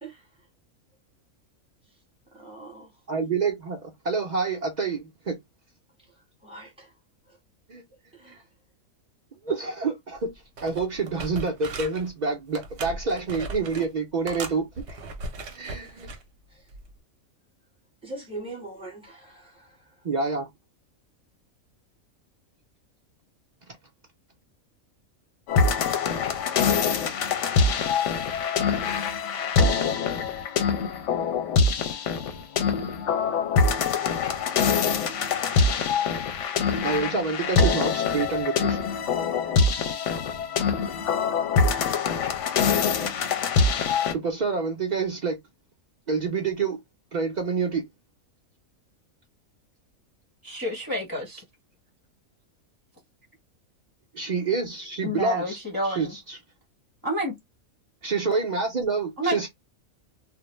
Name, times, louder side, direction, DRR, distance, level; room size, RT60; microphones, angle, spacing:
voice 1, 0.0-0.5 1.8-2.0 2.3-3.0 6.0-7.0 7.2-7.4 7.9-8.5 11.1-11.2 16.5-16.7 18.0-20.2, right 2 dB, 5° right, 0.9 m, -43 dB
voice 2, 3.1-5.4 7.7-7.8 9.4-10.3 10.6-15.0 15.5-16.1 20.0-20.5 36.8-38.8 44.1-45.4 46.1-46.8 47.1-47.9 54.1-55.6 55.9-56.4 58.0-59.5, right 4 dB, 80° right, 0.4 m, -27 dB
sound 1, 10.2-10.3 10.6-12.1 12.5-13.9 14.3-16.2 16.7-16.9, right 3 dB, 60° right, 0.8 m, -38 dB
sound 2, 25.5-44.1, left 5 dB, 70° left, 0.8 m, -24 dB
voice 3, 50.4-51.4 55.0-56.2 57.0-57.4 59.2-59.5, equal, 20° left, 0.6 m, -29 dB
2.4 x 2.1 x 3.0 m
omnidirectional pair, 1.5 m